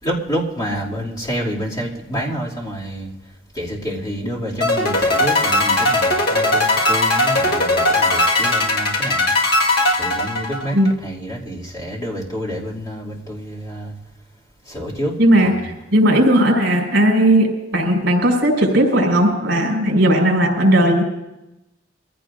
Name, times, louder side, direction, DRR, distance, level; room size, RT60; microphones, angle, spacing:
voice 1, 0.0-3.1 3.5-9.3 10.0-10.8 11.0-13.9 14.7-15.1 15.4-15.7, equal, 20° left, -5 dB, 2.6 m, -28 dB
sound 1, 4.6-10.9, left 2 dB, 50° left, 1.7 m, -18 dB
voice 2, 15.2-21.0, right 1 dB, 60° right, 0 dB, 4.7 m, -16 dB
23.0 x 15.5 x 2.6 m, 0.91 s
head